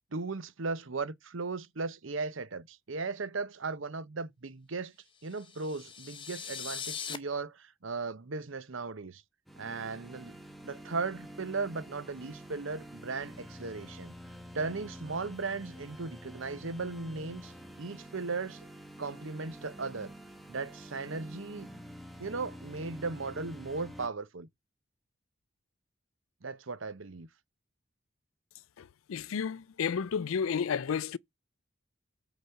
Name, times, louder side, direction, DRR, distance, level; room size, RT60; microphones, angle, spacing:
voice 1, 0.1-4.9 5.2-9.2 9.6-10.4 10.6-14.1 14.5-17.5 17.8-18.7 19.0-20.1 20.5-21.7 22.2-24.5 26.4-27.3, right 4 dB, 75° right, 0.9 m, -37 dB
sound 1, 5.3-7.2, left 7 dB, 25° left, 0.8 m, -40 dB
sound 2, 9.5-24.1, equal, ahead, 1.0 m, -48 dB
voice 2, 28.8-31.2, left 6 dB, 90° left, 0.4 m, -32 dB
8.4 x 4.1 x 5.8 m
head